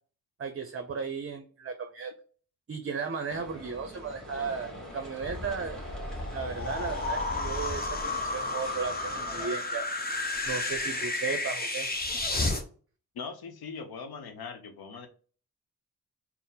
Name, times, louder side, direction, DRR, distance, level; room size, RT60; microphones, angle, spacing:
voice 1, 0.4-2.1 2.7-5.8 6.3-9.9 10.4-11.9, right 5 dB, 35° right, 0.6 m, -35 dB
sound 1, 3.3-9.5, equal, ahead, 1.7 m, -43 dB
sound 2, 5.2-12.6, left 2 dB, 25° left, 0.9 m, -32 dB
voice 2, 13.1-15.1, left 5 dB, 75° left, 0.8 m, -40 dB
4.2 x 2.0 x 3.9 m
supercardioid pair, 40°, 38 cm